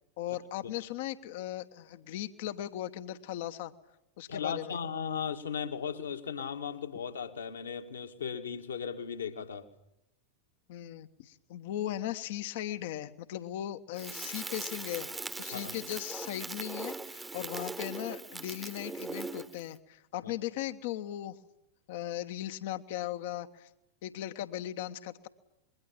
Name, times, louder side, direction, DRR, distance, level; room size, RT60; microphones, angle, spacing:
voice 1, 0.2-3.7 4.2-4.8 10.7-21.4 21.9-23.7 24.0-25.3, left 12 dB, 50° left, 1.2 m, -38 dB
voice 2, 4.3-9.7 15.5-15.8 20.2-20.3, left 7 dB, 70° left, 2.1 m, -36 dB
Crackle, 14.0-19.7, right 3 dB, 10° right, 1.2 m, -40 dB
26.5 x 22.0 x 8.8 m
figure-of-eight pair, 90°, 0 cm